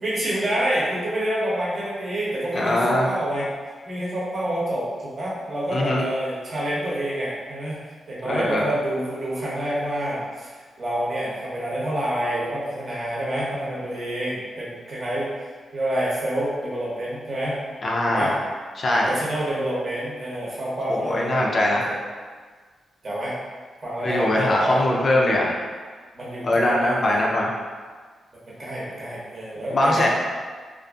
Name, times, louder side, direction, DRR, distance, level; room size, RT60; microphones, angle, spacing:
voice 1, 0.0-3.4 3.9-7.8 8.1-10.5 10.8-15.3 15.7-17.6 18.1-18.3 18.9-22.0 23.0-23.3 23.8-24.8 26.1-27.2 28.6-30.1, right 1 dB, 40° right, -7 dB, 0.8 m, -27 dB
voice 2, 2.5-3.1 5.7-6.0 8.3-8.7 17.8-18.3 18.8-19.1 20.9-21.9 24.0-25.6 26.4-27.5 29.7-30.1, left 1 dB, 45° left, -2 dB, 0.5 m, -21 dB
2.5 x 2.4 x 2.4 m, 1.5 s
cardioid pair, 120°, 0 cm